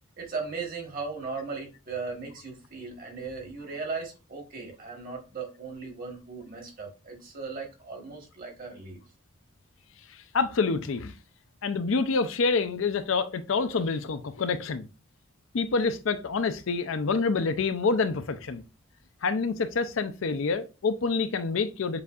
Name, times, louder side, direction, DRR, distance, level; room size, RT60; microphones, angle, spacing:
voice 1, 0.2-9.0, right 4 dB, 40° right, 1.4 m, -37 dB
voice 2, 10.3-11.1 11.6-14.9 15.5-18.6 19.2-22.0, left 4 dB, 65° left, 0.5 m, -27 dB
6.7 x 2.7 x 2.4 m
head